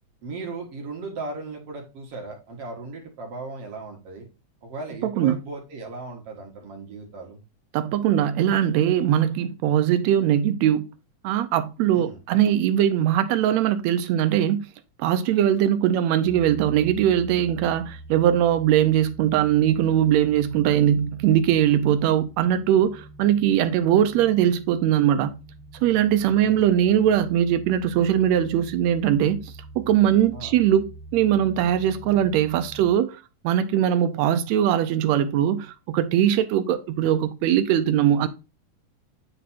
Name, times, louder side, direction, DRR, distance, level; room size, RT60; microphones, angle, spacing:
voice 1, 0.2-4.3 4.6-7.4 11.9-12.2 26.2-26.6 30.3-30.5, right 3 dB, 60° right, 2.3 m, -37 dB
voice 2, 5.0-5.4 7.7-10.9 11.2-14.7 15.0-25.4 25.8-30.9 31.1-38.3, right 10 dB, 75° right, 1.8 m, -21 dB
sound 1, 16.2-32.9, right 2 dB, 45° right, 1.4 m, -44 dB
8.9 x 3.4 x 4.1 m
omnidirectional pair, 3.3 m